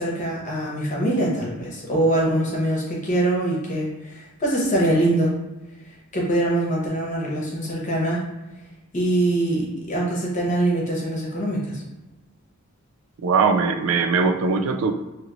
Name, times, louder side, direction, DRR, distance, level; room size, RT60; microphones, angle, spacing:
voice 1, 0.0-5.3 6.1-8.2 8.9-11.8, right 1 dB, 35° left, -4 dB, 0.9 m, -23 dB
voice 2, 13.2-14.9, right 4 dB, 80° right, 8 dB, 0.3 m, -20 dB
2.9 x 2.8 x 2.6 m, 1.0 s
head